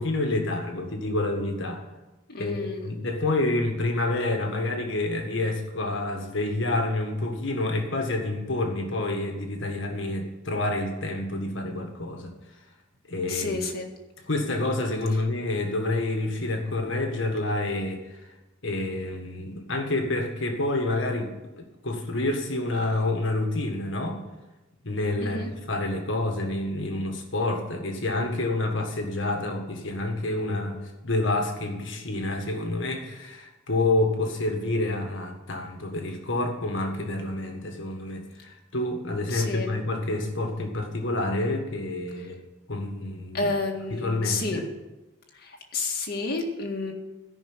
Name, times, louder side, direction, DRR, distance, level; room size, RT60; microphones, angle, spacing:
voice 1, 0.0-1.8 2.4-12.6 13.1-13.6 14.3-18.3 18.6-24.3 24.8-42.4 42.7-43.5 43.9-44.6, left 2 dB, 70° left, 3 dB, 1.7 m, -28 dB
voice 2, 2.3-2.8 13.3-13.9 25.2-25.5 39.3-39.7 43.3-44.6 45.7-46.9, left 3 dB, 50° left, 1 dB, 2.0 m, -30 dB
13.5 x 5.9 x 9.0 m, 1.1 s
head